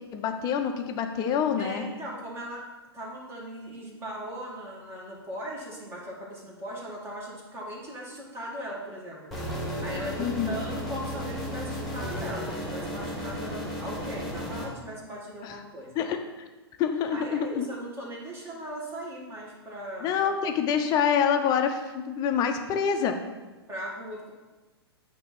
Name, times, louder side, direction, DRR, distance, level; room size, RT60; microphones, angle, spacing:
voice 1, 0.1-1.8 10.2-10.6 15.4-15.6 16.0-16.5 16.8-17.7 20.0-23.2, left 7 dB, 30° left, 5 dB, 0.8 m, -26 dB
voice 2, 1.6-2.7 2.9-9.3 9.8-15.9 17.1-20.1 23.7-24.3, equal, 20° right, -3 dB, 2.1 m, -39 dB
sound 1, 9.3-14.6, equal, ahead, 1.9 m, -34 dB
9.1 x 3.0 x 6.1 m, 1.2 s
figure-of-eight pair, 110°, 14 cm